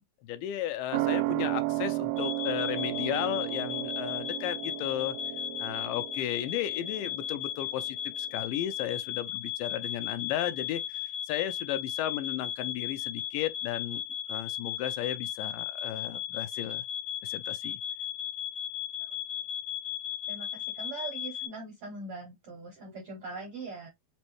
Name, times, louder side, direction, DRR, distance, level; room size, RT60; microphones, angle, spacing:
voice 1, 0.2-5.2 5.6-14.0 14.3-16.8 17.2-17.8, left 11 dB, 80° left, 2.2 m, -34 dB
sound 1, 0.9-8.0 8.3-8.4, right 18 dB, 85° right, 2.2 m, -34 dB
sound 2, 2.2-21.5, left 10 dB, 65° left, 1.5 m, -36 dB
voice 2, 20.3-23.9, right 3 dB, 70° right, 1.4 m, -41 dB
5.3 x 2.1 x 3.0 m
omnidirectional pair, 3.9 m